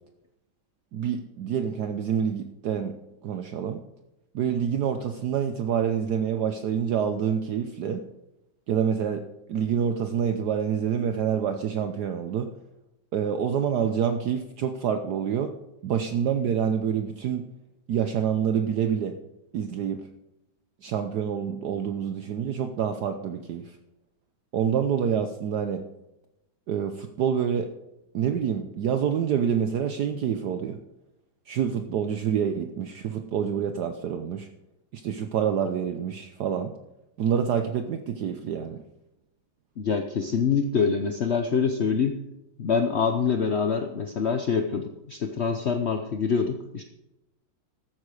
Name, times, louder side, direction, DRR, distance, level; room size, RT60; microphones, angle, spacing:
voice 1, 0.9-3.0 3.2-3.8 4.3-8.0 8.7-12.5 13.1-15.5 15.8-17.4 17.9-19.2 19.5-20.0 20.8-23.7 24.5-25.8 26.7-27.7 28.1-30.8 31.5-34.5 34.9-36.7 37.2-38.8, right 8 dB, 65° right, 7 dB, 1.1 m, -27 dB
voice 2, 39.8-42.2 42.6-46.8, left 6 dB, 70° left, 6 dB, 0.6 m, -25 dB
13.5 x 8.6 x 4.9 m, 0.92 s
omnidirectional pair, 2.2 m